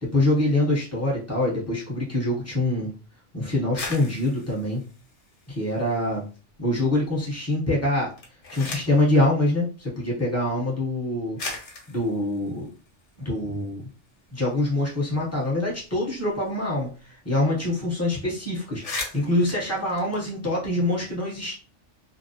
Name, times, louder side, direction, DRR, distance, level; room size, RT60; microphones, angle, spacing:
voice 1, 0.0-2.9 3.3-4.8 5.5-6.2 6.6-8.1 8.5-11.4 11.9-12.7 13.2-13.8 14.3-21.5, left 1 dB, 15° left, -6 dB, 0.8 m, -25 dB
sound 1, 3.6-6.2 6.5-7.2 8.0-9.1 10.1-10.2 11.0-11.1 11.4-13.7 14.1-14.2 14.4-17.0 17.3-17.4 17.7-17.9 18.3-18.4 18.6-20.9, left 3 dB, 55° left, 0.4 m, -39 dB
2.3 x 2.0 x 2.8 m, 0.36 s
omnidirectional pair, 1.3 m